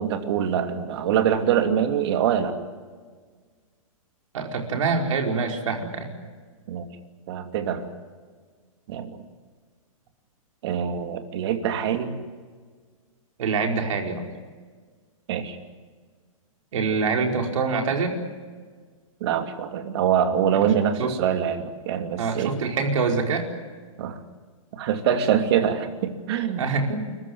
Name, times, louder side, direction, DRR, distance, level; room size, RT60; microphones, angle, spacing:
voice 1, 0.0-2.5 6.7-6.9 7.3-7.9 8.9-9.2 10.6-12.1 15.3-15.6 19.2-22.5 24.0-24.2 24.7-26.6, right 8 dB, 45° right, 6 dB, 2.7 m, -24 dB
voice 2, 4.3-6.1 13.4-14.2 16.7-18.2 21.0-21.1 22.2-23.5 26.6-27.0, right 4 dB, 65° right, 3 dB, 4.9 m, -25 dB
30.0 x 15.0 x 9.5 m, 1.5 s
hypercardioid pair, 155°, 18 cm